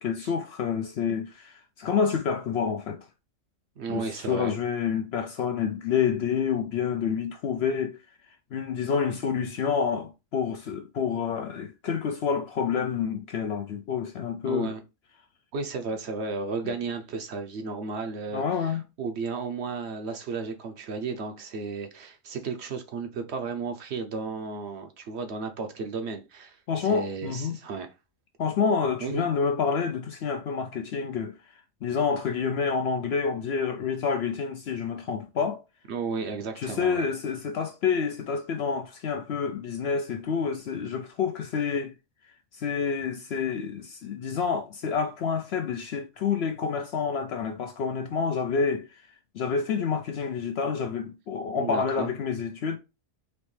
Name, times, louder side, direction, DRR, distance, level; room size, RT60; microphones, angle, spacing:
voice 1, 0.0-3.1 3.9-8.0 8.5-14.7 16.6-16.7 18.3-18.8 26.7-27.6 28.4-31.4 31.8-35.6 36.6-41.9 42.5-49.0 49.3-52.8, left 6 dB, 65° left, 0.7 m, -28 dB
voice 2, 3.8-4.5 14.4-14.8 15.5-27.9 29.0-29.3 35.9-37.0 51.6-52.1, right 4 dB, 60° right, 0.9 m, -34 dB
4.2 x 3.1 x 3.2 m
omnidirectional pair, 1.4 m